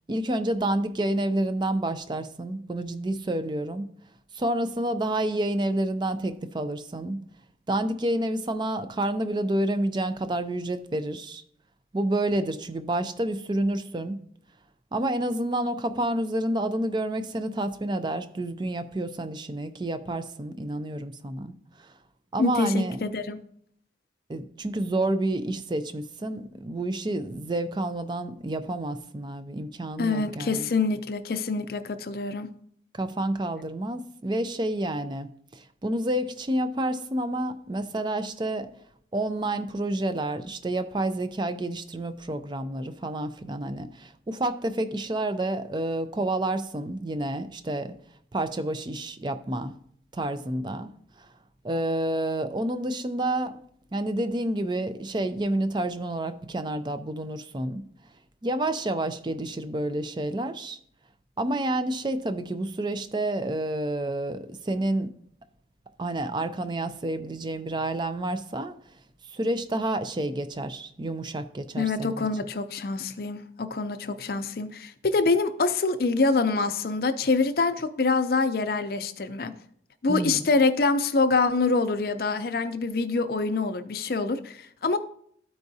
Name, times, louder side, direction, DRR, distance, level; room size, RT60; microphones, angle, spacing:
voice 1, 0.1-3.9 4.3-7.2 7.7-11.4 11.9-14.2 14.9-21.5 21.8-21.9 22.3-23.1 24.3-30.7 32.9-35.3 35.5-38.7 39.1-47.9 48.3-49.7 50.1-50.9 51.2-51.3 51.6-53.6 53.9-57.8 58.4-60.8 61.4-65.1 66.0-68.7 69.3-72.3 80.1-80.4, right 1 dB, 25° right, 10 dB, 0.4 m, -29 dB
voice 2, 22.4-23.4 30.0-32.5 71.8-79.5 80.0-85.0, left 3 dB, 55° left, 9 dB, 0.5 m, -25 dB
13.0 x 4.7 x 2.7 m, 0.66 s
head